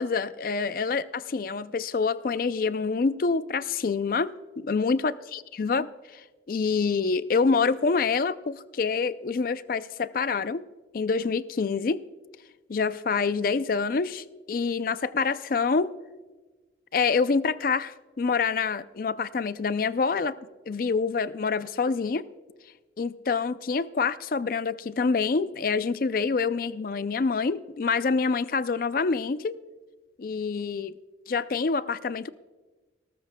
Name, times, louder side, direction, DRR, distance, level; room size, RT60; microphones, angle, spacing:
voice 1, 0.0-10.6 10.9-12.0 12.7-15.9 16.9-20.4 20.7-22.2 23.0-29.6 30.2-30.9 31.3-32.3, left 4 dB, 50° left, 0.4 m, -26 dB
18.0 x 14.0 x 2.2 m
head